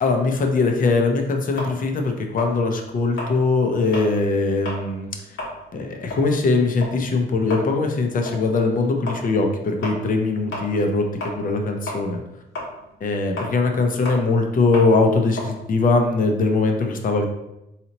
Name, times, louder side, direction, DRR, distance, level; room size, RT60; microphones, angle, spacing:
voice 1, 0.0-5.1 5.7-12.2 13.0-17.2, left 3 dB, 45° left, 4 dB, 0.6 m, -21 dB
sound 1, 1.6-4.2 4.5-4.9 5.2-11.6 11.9-16.6, left 1 dB, 85° left, 1.3 m, -34 dB
4.0 x 2.8 x 2.9 m, 0.90 s
cardioid pair, 115°, 19 cm